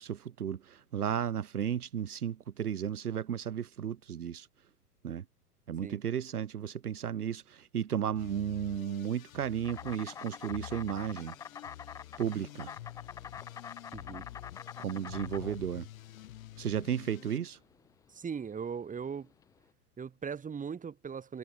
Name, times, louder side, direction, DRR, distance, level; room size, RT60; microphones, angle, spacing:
voice 1, 0.0-4.5 5.0-5.2 5.7-11.3 12.2-12.7 14.8-15.9 16.6-17.6, right 9 dB, 70° right, 2.2 m, -34 dB
sound 1, 8.1-17.4, left 13 dB, 55° left, 8.0 m, -48 dB
Insect, 9.6-19.6, left 7 dB, 10° left, 0.5 m, -46 dB
voice 2, 13.9-14.2 18.1-19.3 20.0-21.4, right 6 dB, 15° right, 5.1 m, -39 dB
figure-of-eight pair, 95°, 47 cm